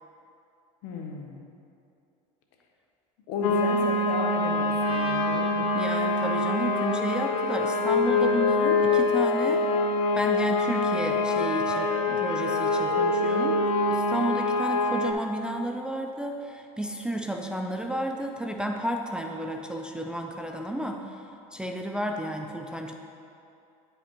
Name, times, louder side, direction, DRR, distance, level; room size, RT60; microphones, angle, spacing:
voice 1, 0.8-1.4 3.3-5.7, left 4 dB, 65° left, 2 dB, 1.0 m, -34 dB
sound 1, 3.4-15.1, left 3 dB, 85° left, 0.5 m, -25 dB
Trumpet, 4.8-9.0, right 1 dB, 30° right, 1.1 m, -38 dB
voice 2, 5.7-9.7 10.1-21.2 21.5-22.9, right 1 dB, 5° right, 2 dB, 0.4 m, -32 dB
Wind instrument woodwind instrument, 5.9-9.9 10.2-14.5, equal, 25° left, 1.6 m, -36 dB
9.6 x 5.0 x 3.0 m, 2.6 s
supercardioid pair, 100°, 19 cm